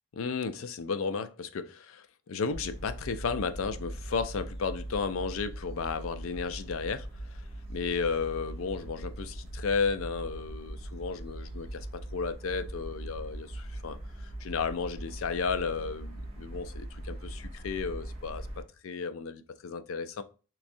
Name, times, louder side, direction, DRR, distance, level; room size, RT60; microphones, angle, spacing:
voice 1, 0.1-7.4 7.7-14.0 14.4-20.2, left 5 dB, 75° left, 0.4 m, -33 dB
sound 1, 2.5-18.6, right 1 dB, 30° right, 1.1 m, -41 dB
3.4 x 3.1 x 2.6 m
head